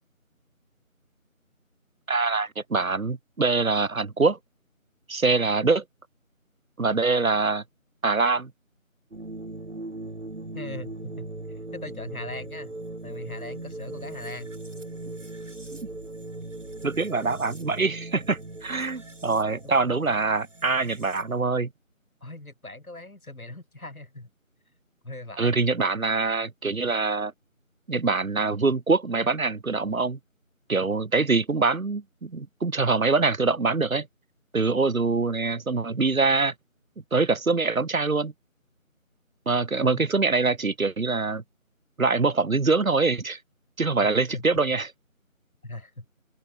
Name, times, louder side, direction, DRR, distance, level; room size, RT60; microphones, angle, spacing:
voice 1, 2.1-4.4 5.1-5.8 6.8-7.6 8.0-8.5 16.8-21.7 25.4-27.3 27.9-30.2 30.7-34.1 34.5-36.5 37.1-38.3 39.5-41.4 42.0-43.4 43.8-44.9, right 3 dB, 75° right, 1.4 m, -24 dB
sound 1, 9.1-21.4, right 2 dB, 60° right, 5.1 m, -39 dB
voice 2, 10.5-12.8 13.0-14.5 19.6-19.8 22.2-24.3 25.0-25.6 39.9-40.0 44.0-44.4 45.6-46.1, left 2 dB, 85° left, 5.2 m, -40 dB
open air
figure-of-eight pair, 175°, 42 cm